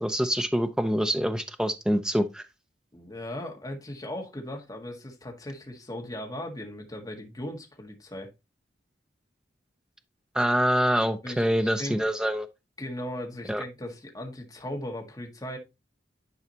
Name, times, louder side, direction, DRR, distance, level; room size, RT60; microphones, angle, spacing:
voice 1, 0.0-2.4 10.3-12.5 13.5-13.6, equal, 5° right, 0.6 m, -25 dB
voice 2, 2.9-8.3 11.2-12.0 12.8-15.6, left 1 dB, 20° left, 1.6 m, -38 dB
11.0 x 4.8 x 2.8 m
head